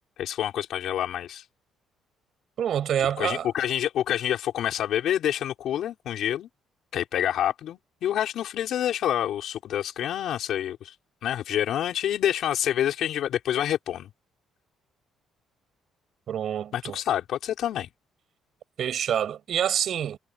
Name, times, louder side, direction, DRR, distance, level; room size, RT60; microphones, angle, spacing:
voice 1, 0.2-1.4 3.0-6.5 6.9-10.9 11.2-14.1 16.7-17.9, left 11 dB, 60° left, 5.9 m, -27 dB
voice 2, 2.6-3.5 16.3-17.0 18.8-20.2, right 9 dB, 50° right, 7.6 m, -27 dB
cardioid pair, 165°, 0 cm